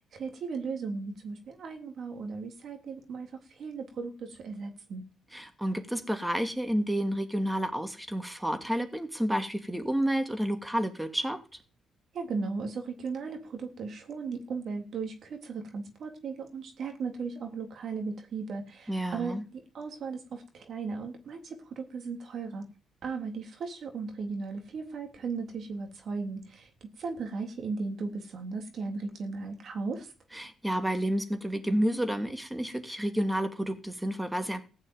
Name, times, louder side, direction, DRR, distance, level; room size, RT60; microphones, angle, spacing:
voice 1, 0.1-5.0 12.1-22.7 23.0-26.7 27.0-30.1, right 4 dB, 60° right, 4 dB, 3.3 m, -36 dB
voice 2, 5.3-11.4 18.9-19.4 30.3-34.6, equal, 5° right, 6 dB, 2.6 m, -30 dB
15.5 x 6.5 x 9.4 m, 0.34 s
cardioid pair, 90°, 0 cm